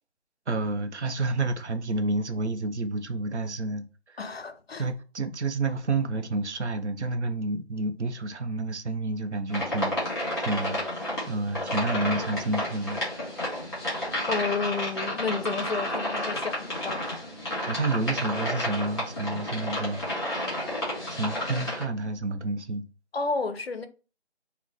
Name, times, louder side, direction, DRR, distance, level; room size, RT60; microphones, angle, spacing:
voice 1, 0.5-4.2 4.8-10.8 11.3-13.0 17.6-20.3 21.1-22.9, right 2 dB, 80° right, 0.6 m, -30 dB
voice 2, 4.2-4.9 14.3-17.7 23.1-23.9, left 4 dB, 60° left, 0.5 m, -31 dB
sound 1, 9.5-21.8, left 1 dB, 25° left, 1.7 m, -31 dB
3.7 x 2.0 x 2.8 m
figure-of-eight pair, 165°, 34 cm